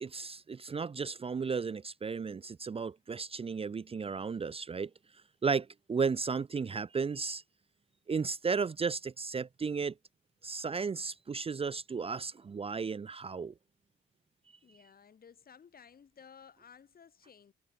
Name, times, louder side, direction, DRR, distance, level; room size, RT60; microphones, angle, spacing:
voice 1, 0.0-4.9 5.4-7.4 8.1-9.9 10.4-13.5, right 5 dB, 30° right, 0.7 m, -34 dB
voice 2, 14.6-17.5, left 7 dB, 50° left, 7.8 m, -56 dB
cardioid pair, 90°, 20 cm